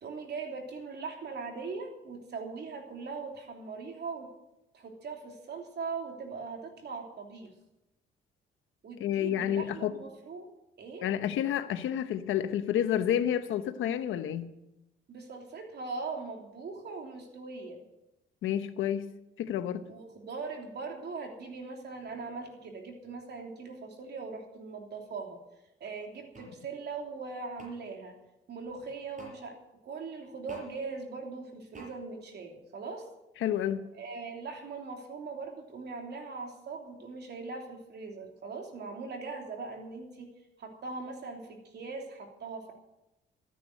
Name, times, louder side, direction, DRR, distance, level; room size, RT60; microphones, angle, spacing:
voice 1, 0.0-4.3 4.7-7.5 8.8-10.5 10.8-11.1 15.1-17.8 19.9-25.4 25.8-28.2 28.5-29.6 29.8-33.1 33.9-40.3 40.6-42.7, right 4 dB, 55° right, 3.1 m, -40 dB
voice 2, 9.0-10.0 11.0-14.5 18.4-19.1 19.4-19.8 33.4-33.8, left 10 dB, 80° left, 1.0 m, -29 dB
sound 1, 26.3-26.5 27.6-27.7 29.2-29.4 30.5-30.7 31.7-31.9, right 2 dB, 40° right, 5.7 m, -47 dB
13.5 x 9.4 x 7.8 m
cardioid pair, 90°, 20 cm